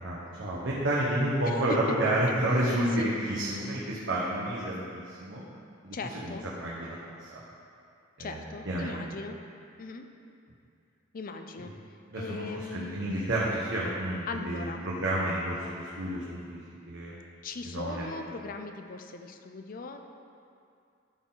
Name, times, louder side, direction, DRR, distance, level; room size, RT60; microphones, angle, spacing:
voice 1, 0.0-5.4 5.8-7.3 8.2-9.0 12.1-16.6 16.9-17.2 17.6-18.0, right 1 dB, 65° right, -6 dB, 1.1 m, -30 dB
voice 2, 1.4-2.0 3.0-3.2 5.9-6.4 8.2-9.4 9.8-10.1 11.1-11.7 12.2-13.2 14.3-14.8 17.4-20.1, left 4 dB, 45° left, 6 dB, 0.5 m, -39 dB
12.5 x 4.3 x 3.9 m, 2.4 s
head